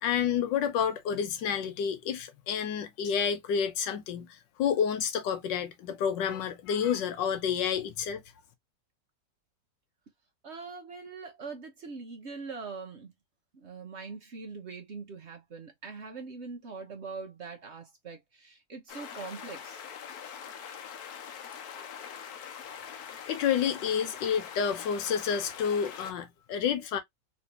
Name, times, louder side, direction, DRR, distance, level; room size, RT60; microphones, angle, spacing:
voice 1, 0.0-8.2 23.3-27.0, left 7 dB, 85° left, 1.4 m, -29 dB
voice 2, 10.4-13.1 13.5-19.8, right 4 dB, 50° right, 0.9 m, -42 dB
sound 1, 18.9-26.1, left 8 dB, 65° left, 1.1 m, -43 dB
3.2 x 3.2 x 2.7 m
omnidirectional pair, 1.9 m